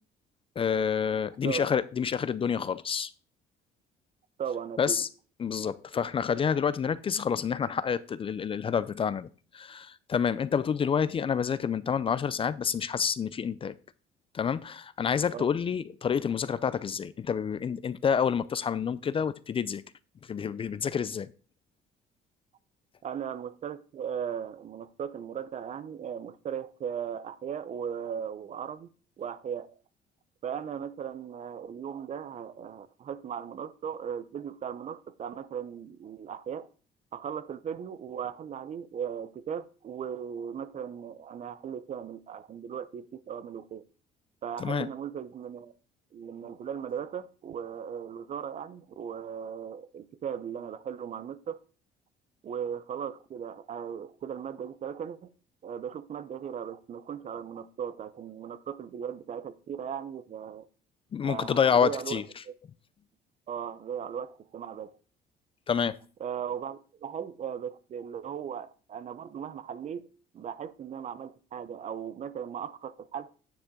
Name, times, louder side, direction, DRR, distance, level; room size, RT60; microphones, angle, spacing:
voice 1, 0.6-3.1 4.8-5.1 5.4-9.3 9.5-13.7 14.3-19.8 20.3-21.3 44.6-44.9 61.1-62.2 65.7-65.9, left 7 dB, 35° left, 0.5 m, -28 dB
voice 2, 4.4-5.0 15.3-15.5 23.0-28.9 29.2-29.8 30.4-36.7 37.1-43.8 44.4-45.7 46.1-51.6 52.4-55.3 55.6-60.6 61.2-62.5 63.5-64.9 66.2-70.1 70.3-73.3, right 8 dB, 45° right, 0.7 m, -37 dB
9.5 x 7.0 x 3.8 m
cardioid pair, 110°, 17 cm